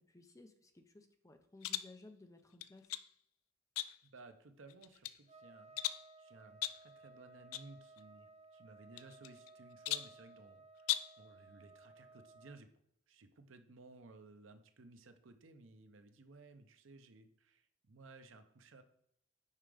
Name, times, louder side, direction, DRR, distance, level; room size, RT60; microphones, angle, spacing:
voice 1, 0.1-2.9, left 2 dB, 15° left, 6 dB, 0.6 m, -58 dB
sound 1, 1.6-2.0 2.6-3.1 3.8-4.2 4.7-5.2 5.8-6.1 6.6-6.9 7.5-7.7 8.0-8.1 9.0-9.5 9.8-10.2 10.8-11.2, left 14 dB, 85° left, 0.3 m, -39 dB
voice 2, 4.0-12.7 13.1-18.8, right 3 dB, 65° right, 8 dB, 0.7 m, -58 dB
Trumpet, 5.3-12.6, right 3 dB, 35° right, 0.5 m, -59 dB
5.6 x 4.9 x 4.9 m, 0.75 s
head